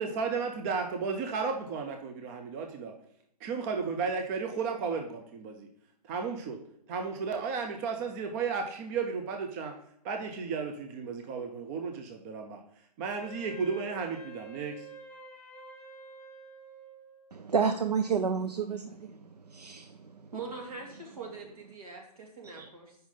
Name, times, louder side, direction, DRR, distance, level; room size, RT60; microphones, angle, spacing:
voice 1, 0.0-3.0 3.4-5.7 6.1-6.6 6.9-9.8 10.0-12.6 13.0-14.8, right 5 dB, 25° right, 4 dB, 0.5 m, -34 dB
Wind instrument woodwind instrument, 13.1-17.4, right 4 dB, 5° left, 0.8 m, -49 dB
voice 2, 17.3-20.3 22.6-22.7, right 6 dB, 80° right, 8 dB, 0.5 m, -31 dB
voice 3, 20.3-23.0, right 4 dB, 65° right, 1 dB, 1.9 m, -42 dB
5.8 x 5.3 x 3.8 m, 0.73 s
figure-of-eight pair, 125°, 20 cm